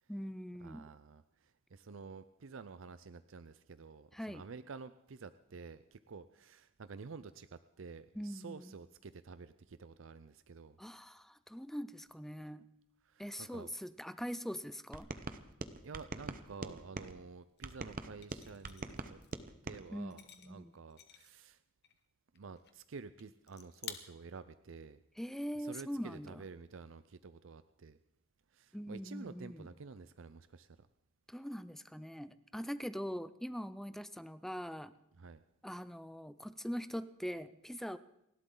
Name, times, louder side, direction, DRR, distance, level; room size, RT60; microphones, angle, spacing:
voice 1, 0.1-0.8 4.1-4.4 8.2-8.7 10.8-12.6 13.2-15.1 19.9-20.1 20.4-20.7 25.2-26.4 28.7-29.7 31.3-34.9 35.6-38.0, equal, ahead, 13 dB, 0.5 m, -42 dB
voice 2, 0.6-10.8 13.0-13.7 15.8-19.2 19.6-21.6 22.3-25.0 25.6-28.0 28.5-30.9 35.1-35.4, right 4 dB, 70° right, 13 dB, 0.5 m, -50 dB
sound 1, 14.9-17.1 17.6-19.8, right 3 dB, 45° right, 0.9 m, -44 dB
sound 2, 17.6-17.7 18.2-19.4 20.0-21.5 21.8-22.0 22.3-22.8 23.2-23.3 23.5-23.9, left 10 dB, 55° left, 1.2 m, -51 dB
29.5 x 12.0 x 3.9 m, 0.79 s
head